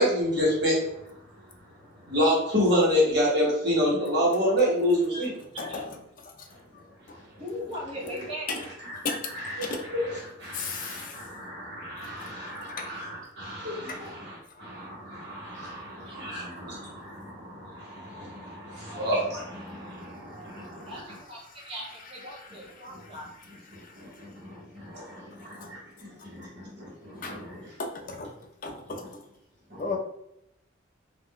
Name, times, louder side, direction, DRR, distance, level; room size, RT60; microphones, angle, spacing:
voice 1, 0.0-5.3 6.5-7.4 8.0-8.1 8.5-21.1 22.9-23.0 23.7-27.8 29.7-30.0, equal, 55° right, -5 dB, 1.2 m, -29 dB
voice 2, 7.4-8.5 16.0-16.1 18.7-19.0 20.9-21.0 21.3-23.3, equal, 25° right, -4 dB, 0.8 m, -39 dB
voice 3, 10.5-11.2 12.2-12.3 12.7-12.9 23.8-23.9 25.6-25.7 27.2-27.4 27.8-28.3 28.6-29.0 29.8-30.0, left 4 dB, 40° left, 3 dB, 0.4 m, -34 dB
2.4 x 2.1 x 3.6 m, 0.80 s
head